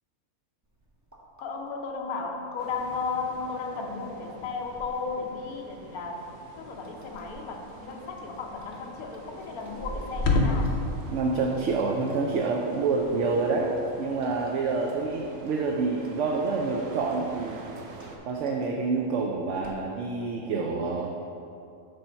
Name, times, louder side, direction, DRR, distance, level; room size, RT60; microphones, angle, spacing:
sound 1, 0.6-19.8, equal, 15° right, 0.6 m, -46 dB
voice 1, 1.4-6.3 6.6-10.8, left 4 dB, 85° left, 1 dB, 1.2 m, -34 dB
sound 2, 2.6-18.2, right 3 dB, 85° right, 1.2 m, -47 dB
sound 3, 6.2-15.1, left 2 dB, 55° left, 0.9 m, -34 dB
voice 2, 11.1-17.6 18.3-21.2, right 4 dB, 65° right, 0 dB, 0.8 m, -27 dB
6.7 x 4.2 x 5.6 m, 2.6 s
omnidirectional pair, 1.5 m